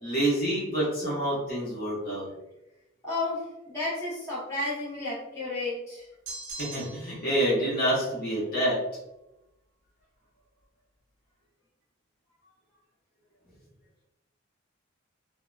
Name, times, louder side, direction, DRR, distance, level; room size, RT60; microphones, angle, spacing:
voice 1, 0.0-2.3 6.6-8.8, right 1 dB, 45° left, -7 dB, 0.9 m, -27 dB
voice 2, 3.0-6.1, left 2 dB, 15° left, -11 dB, 0.9 m, -32 dB
sound 1, 6.3-7.3, right 3 dB, 55° right, 0.4 m, -40 dB
2.7 x 2.0 x 2.3 m, 0.93 s
head